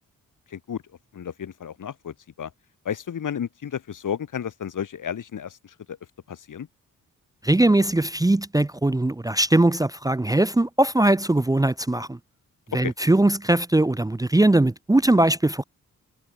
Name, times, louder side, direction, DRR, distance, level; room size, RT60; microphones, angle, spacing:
voice 1, 0.5-0.8 1.1-2.5 2.8-6.0 6.3-6.7 12.8-12.9, left 8 dB, 70° left, 2.4 m, -32 dB
voice 2, 7.4-12.2 12.7-15.6, right 1 dB, 10° right, 0.7 m, -20 dB
cardioid pair, 65°, 32 cm